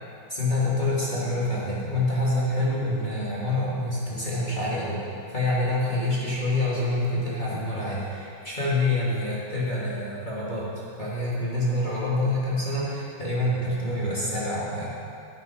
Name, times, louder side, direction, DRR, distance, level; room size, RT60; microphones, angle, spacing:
voice 1, 0.3-10.7 11.0-14.9, left 1 dB, 15° left, -8 dB, 1.9 m, -26 dB
14.0 x 9.4 x 5.3 m, 2.5 s
omnidirectional pair, 4.6 m